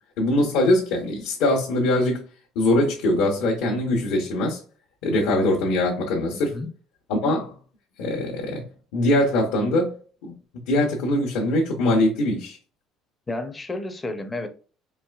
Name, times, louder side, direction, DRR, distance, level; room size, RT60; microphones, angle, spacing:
voice 1, 0.2-2.2 2.5-4.6 5.0-6.5 7.1-7.5 8.0-8.6 8.9-9.9 10.2-10.3 10.7-12.6, left 1 dB, 75° left, 1.1 m, -22 dB
voice 2, 6.3-6.7 13.3-14.5, left 2 dB, 15° left, 0.5 m, -31 dB
4.5 x 3.3 x 2.3 m
cardioid pair, 165°, 0 cm